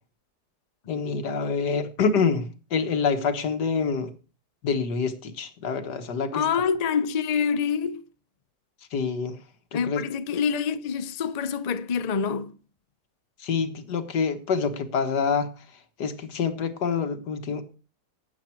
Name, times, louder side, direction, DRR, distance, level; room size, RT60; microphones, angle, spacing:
voice 1, 0.9-4.1 4.6-6.5 8.9-9.4 9.7-10.0 13.4-15.7 16.0-17.6, left 5 dB, 85° left, 1.9 m, -26 dB
voice 2, 6.3-8.1 9.7-12.6, left 6 dB, 60° left, 0.4 m, -26 dB
12.0 x 9.0 x 4.5 m
omnidirectional pair, 1.7 m